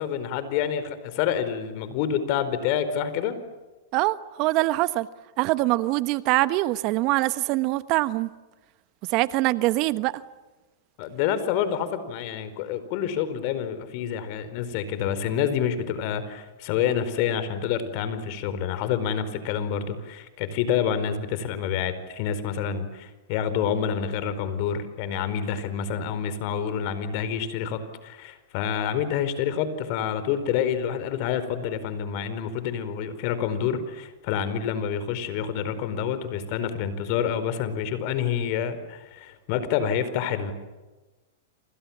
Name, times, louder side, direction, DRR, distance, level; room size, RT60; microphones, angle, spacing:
voice 1, 0.0-3.4 11.0-40.5, left 8 dB, 50° left, 4.6 m, -28 dB
voice 2, 3.9-5.1 5.4-8.3 9.1-10.2, right 19 dB, 45° right, 1.1 m, -23 dB
28.5 x 28.0 x 7.4 m
hypercardioid pair, 115°, 0 cm